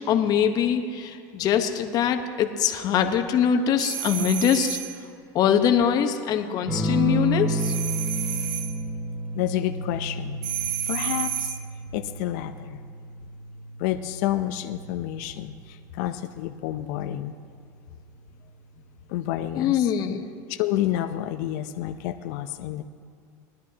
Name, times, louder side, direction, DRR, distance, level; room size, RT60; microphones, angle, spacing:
voice 1, 0.0-4.8 5.3-7.7 19.6-20.2, left 8 dB, 45° left, 6 dB, 1.0 m, -23 dB
sound 1, 3.8-5.0 7.6-8.8 10.4-11.7, right 10 dB, 65° right, 1.0 m, -31 dB
sound 2, 6.7-15.8 17.2-17.8, right 1 dB, 20° right, 3.0 m, -31 dB
voice 2, 9.3-11.6 11.9-12.8 13.8-17.4 19.1-19.9 20.5-22.8, left 13 dB, 70° left, 7 dB, 0.5 m, -29 dB
19.5 x 11.5 x 2.8 m, 2.4 s
supercardioid pair, 130°, 10 cm